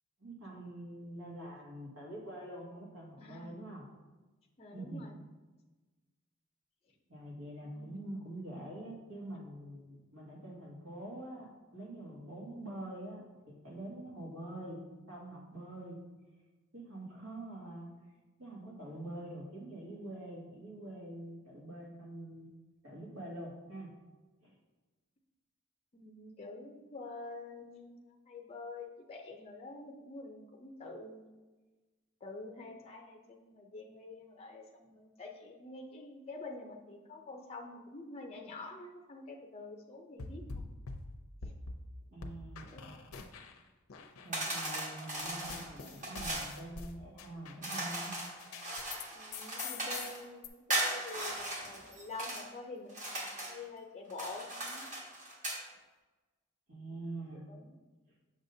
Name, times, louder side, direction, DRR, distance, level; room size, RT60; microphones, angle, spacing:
voice 1, 0.2-3.8 4.7-5.1 7.1-16.0 16.7-17.9 18.4-22.5 22.8-23.9 24.4-24.6 42.1-42.8 44.2-48.1 56.7-57.4, right 1 dB, 75° right, -3 dB, 2.0 m, -45 dB
voice 2, 3.2-3.5 4.6-5.1 7.6-8.0 25.9-31.3 32.2-40.6 42.7-43.0 49.2-54.9 57.5-57.8, left 3 dB, 30° left, 1 dB, 0.5 m, -47 dB
sound 1, 40.2-41.8 42.2-43.6 43.9-49.1 49.3-50.5, left 4 dB, 75° left, 0.6 m, -45 dB
sound 2, 44.3-46.5 47.6-50.2 50.7-52.4 52.9-53.6 54.1-55.6, right 1 dB, 35° right, 1.5 m, -38 dB
7.2 x 6.4 x 2.7 m, 1.2 s
head